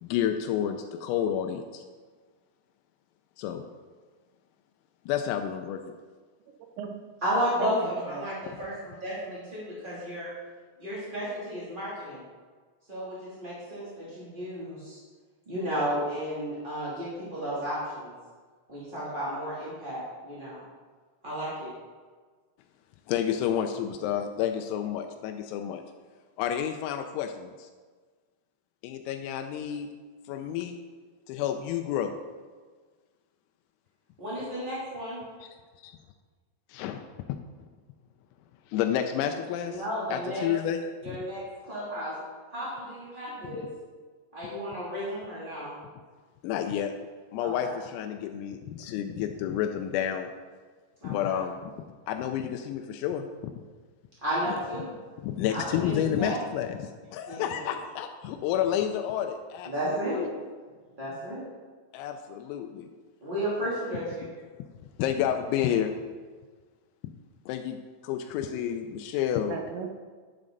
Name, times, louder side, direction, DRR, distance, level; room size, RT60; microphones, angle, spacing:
voice 1, 0.0-1.8 3.4-3.7 5.1-5.9 8.4-8.8 23.1-25.8 26.4-27.7 28.8-29.9 30.3-30.8 31.3-32.1 35.8-36.0 36.7-37.0 38.7-39.8 40.1-41.2 43.4-43.6 46.4-46.9 47.3-50.3 51.0-51.7 52.1-53.3 54.5-54.6 55.2-60.3 61.9-62.9 65.0-65.9 67.5-67.8 68.0-69.6, left 9 dB, 85° left, 6 dB, 3.3 m, -30 dB
voice 2, 6.5-6.9 7.6-8.3 68.5-68.6 69.5-69.9, right 6 dB, 80° right, 4 dB, 3.2 m, -37 dB
voice 3, 7.2-10.3 10.8-12.2 12.9-15.0 15.4-18.1 18.7-20.6 21.2-21.7 34.2-35.2 39.6-40.5 41.0-42.1 42.5-43.7 44.3-45.8 47.4-47.7 51.0-51.4 54.2-54.9 55.5-56.4 57.3-57.6 59.6-60.3 61.0-61.4 63.2-64.3, equal, 20° right, -9 dB, 1.3 m, -33 dB
11.0 x 10.5 x 3.9 m, 1.5 s
omnidirectional pair, 6.0 m